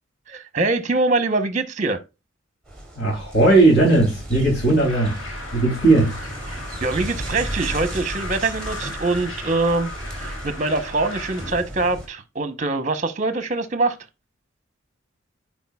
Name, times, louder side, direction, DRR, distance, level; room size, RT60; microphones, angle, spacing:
voice 1, 0.3-2.0 6.8-14.0, right 3 dB, 35° right, 0.8 m, -23 dB
sound 1, 2.7-12.1, right 1 dB, 5° left, 2.5 m, -34 dB
voice 2, 3.0-5.2 5.5-6.2, right 2 dB, 55° left, 2.6 m, -17 dB
sound 2, 4.8-11.5, left 2 dB, 90° left, 1.9 m, -37 dB
9.9 x 4.5 x 2.3 m
head